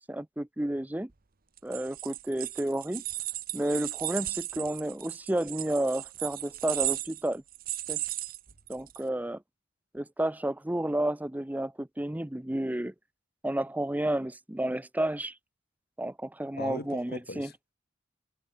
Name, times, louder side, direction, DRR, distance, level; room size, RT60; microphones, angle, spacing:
voice 1, 0.1-1.1 1.6-3.0 3.5-7.4 7.9-8.0 8.7-9.4 9.9-12.9 13.4-15.3 16.0-17.5, right 1 dB, 10° right, 0.6 m, -31 dB
sound 1, 1.6-9.0, right 14 dB, 45° right, 1.0 m, -36 dB
voice 2, 16.6-17.7, left 2 dB, 55° left, 3.9 m, -40 dB
head